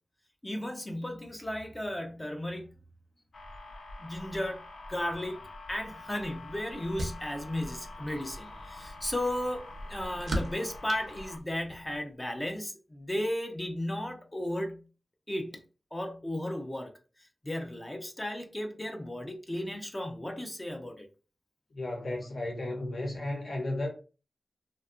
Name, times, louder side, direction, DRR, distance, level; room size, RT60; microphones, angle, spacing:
voice 1, 0.4-2.7 4.0-4.6 4.9-5.4 5.7-14.8 15.3-15.6 15.9-16.9 17.4-21.1, left 1 dB, 20° left, 0.4 m, -35 dB
sound 1, 3.3-11.4, left 2 dB, 80° left, 0.4 m, -46 dB
sound 2, 5.8-12.0, right 1 dB, 90° right, 0.5 m, -41 dB
voice 2, 21.7-23.9, left 1 dB, 60° left, 0.8 m, -34 dB
2.7 x 2.2 x 2.4 m
wide cardioid pair, 110°, 0 cm